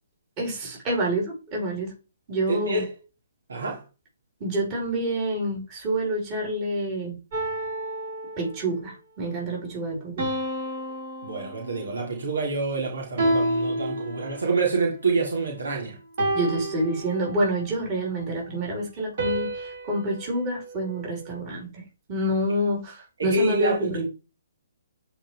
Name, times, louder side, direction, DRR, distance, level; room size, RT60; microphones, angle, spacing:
voice 1, 0.4-1.9 2.3-2.8 4.4-7.2 8.4-10.3 16.3-21.8 22.1-24.0, right 1 dB, 30° right, 5.4 m, -27 dB
voice 2, 2.5-2.9 3.5-3.8 11.2-16.0 23.2-24.0, right 3 dB, 80° right, 3.4 m, -27 dB
sound 1, 7.3-8.8 10.2-12.0 13.2-14.6 16.2-17.6 19.2-21.4, right 1 dB, 55° right, 5.1 m, -30 dB
10.0 x 5.3 x 3.5 m
hypercardioid pair, 145°, 0 cm